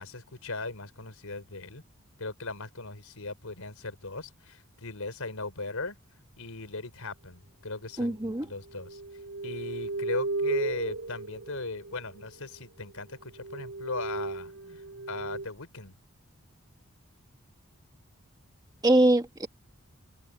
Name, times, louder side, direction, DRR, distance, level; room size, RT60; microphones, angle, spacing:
voice 1, 0.0-1.8 2.2-6.0 6.4-9.0 9.4-15.9, left 3 dB, 85° left, 4.1 m, -38 dB
voice 2, 8.0-8.5 18.8-19.5, right 1 dB, 20° right, 1.4 m, -23 dB
sound 1, 8.7-12.3 12.9-13.0 13.3-15.5, right 2 dB, 70° right, 4.0 m, -34 dB
head